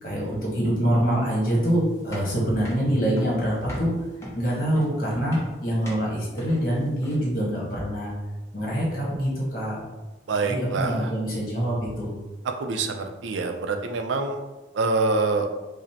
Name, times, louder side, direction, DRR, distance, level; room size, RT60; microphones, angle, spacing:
voice 1, 0.0-3.9 4.3-8.1 8.5-9.8 10.4-12.1, equal, 50° left, -5 dB, 1.2 m, -25 dB
sound 1, 1.5-7.4, equal, 15° left, 0.8 m, -40 dB
voice 2, 10.3-11.1 12.6-14.4 14.7-15.5, right 3 dB, 85° right, 5 dB, 0.4 m, -25 dB
5.0 x 2.0 x 2.8 m, 1.1 s
head